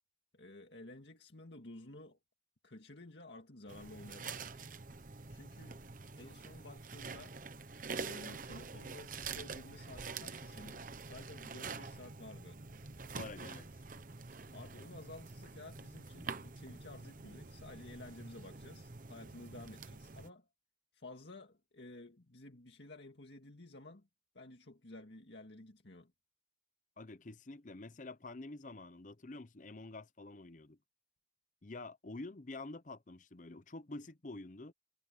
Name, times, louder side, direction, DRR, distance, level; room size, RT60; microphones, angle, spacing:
voice 1, 0.3-2.2 2.6-4.7 5.3-5.8 6.2-7.4 7.9-12.6 14.5-20.5 20.9-24.1 24.3-26.1, left 2 dB, 70° left, 2.0 m, -53 dB
sound 1, 3.7-20.3, right 4 dB, 45° right, 1.0 m, -46 dB
voice 2, 13.1-13.7 27.0-30.8 31.6-34.7, left 2 dB, 45° left, 0.8 m, -48 dB
head